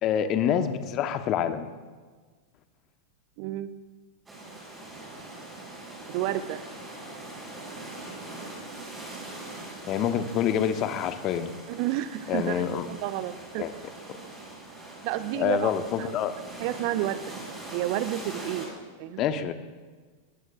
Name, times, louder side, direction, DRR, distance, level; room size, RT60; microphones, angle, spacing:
voice 1, 0.0-1.7 9.9-11.5 12.3-12.9 13.6-13.7 15.3-16.4 19.2-19.5, left 9 dB, 35° left, 10 dB, 1.0 m, -26 dB
voice 2, 3.4-3.7 6.1-6.6 11.7-13.7 15.0-15.7 16.0-16.1 16.6-17.3 17.7-18.7 19.0-19.2, right 14 dB, 45° right, 14 dB, 0.6 m, -30 dB
sound 1, 4.3-18.7, right 2 dB, 10° right, 5.3 m, -42 dB
22.0 x 18.5 x 2.5 m, 1.4 s
figure-of-eight pair, 90°, 0 cm